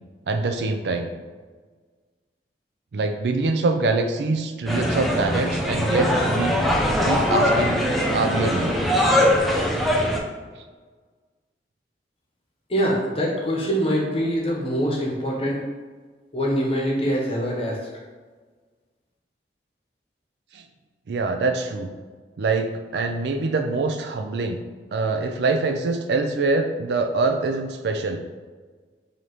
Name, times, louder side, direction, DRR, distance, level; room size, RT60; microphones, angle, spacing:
voice 1, 0.3-1.1 2.9-6.5 7.0-7.9 8.1-8.8 20.5-20.6 21.1-21.9 22.4-24.6 24.9-28.2, right 3 dB, 75° right, 6 dB, 0.4 m, -24 dB
sound 1, 4.7-10.2, equal, ahead, 0.4 m, -21 dB
voice 2, 12.7-15.6 16.3-17.9, equal, 35° left, -3 dB, 0.9 m, -24 dB
4.8 x 2.8 x 3.0 m, 1.4 s
head